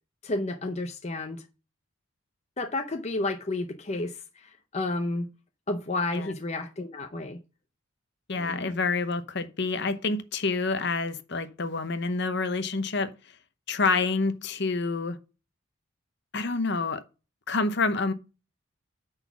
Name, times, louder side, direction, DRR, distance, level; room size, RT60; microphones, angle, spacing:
voice 1, 0.2-1.4 2.6-5.3 5.7-7.4 8.4-8.8, left 2 dB, 30° left, 0.6 m, -31 dB
voice 2, 8.3-13.1 13.7-15.2 16.3-17.0 17.5-18.1, left 3 dB, 55° left, 0.8 m, -28 dB
9.5 x 4.0 x 6.1 m
head